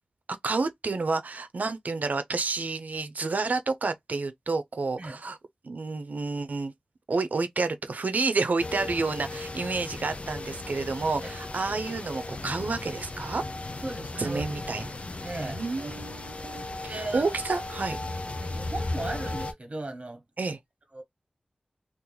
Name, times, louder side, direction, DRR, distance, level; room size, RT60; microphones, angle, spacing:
voice 1, 0.4-5.4 5.6-6.7 7.1-13.4 14.2-14.9 15.4-18.0 20.4-20.6, right 3 dB, 85° right, 0.6 m, -30 dB
sound 1, 8.6-19.5, left 2 dB, 50° left, 0.6 m, -36 dB
voice 2, 13.8-14.4 15.2-16.0 16.9-17.3 18.4-20.2 20.9-21.0, right 2 dB, 50° right, 1.4 m, -36 dB
2.9 x 2.5 x 3.8 m
wide cardioid pair, 55°, 3 cm